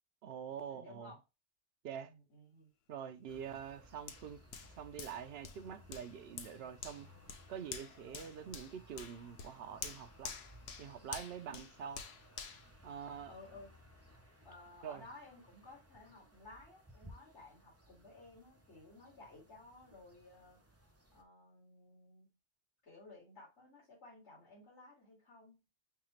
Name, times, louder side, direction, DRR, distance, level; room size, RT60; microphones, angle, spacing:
voice 1, 0.2-1.1 1.8-2.1 2.9-4.4 4.7-7.1 7.5-10.3 10.8-12.0 12.8-13.3 14.8-15.1, right 8 dB, 70° right, 0.8 m, -45 dB
voice 2, 0.7-1.2 2.1-2.7 13.3-13.7 14.4-20.8 21.1-22.3 22.8-25.6, left 2 dB, 90° left, 3.0 m, -56 dB
sound 1, 3.3-21.2, equal, 15° right, 0.6 m, -61 dB
Hands, 4.1-13.6 14.1-14.2, left 6 dB, 70° left, 0.9 m, -49 dB
5.8 x 2.4 x 3.0 m
omnidirectional pair, 1.1 m